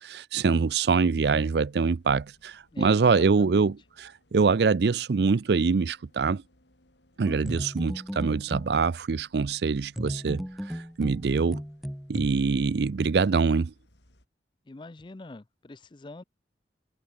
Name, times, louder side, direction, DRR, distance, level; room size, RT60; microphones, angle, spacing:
voice 1, 0.0-6.4 7.2-11.6 12.1-13.7, right 5 dB, 70° right, 0.5 m, -24 dB
sound 1, 0.8-14.3, left 1 dB, 85° left, 6.7 m, -65 dB
voice 2, 2.7-3.7 14.7-16.2, left 2 dB, 25° left, 0.5 m, -44 dB
sound 2, 7.3-8.7 10.0-12.3, equal, ahead, 1.0 m, -36 dB
head